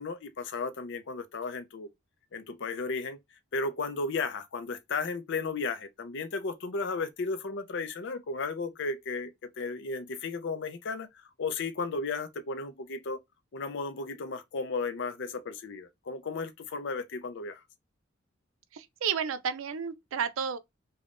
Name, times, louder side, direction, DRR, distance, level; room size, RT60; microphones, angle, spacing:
voice 1, 0.0-1.9 2.3-3.2 3.5-13.2 13.5-17.6, left 4 dB, 60° left, 0.5 m, -34 dB
voice 2, 18.7-20.6, right 7 dB, 75° right, 0.4 m, -32 dB
3.4 x 2.2 x 2.5 m
head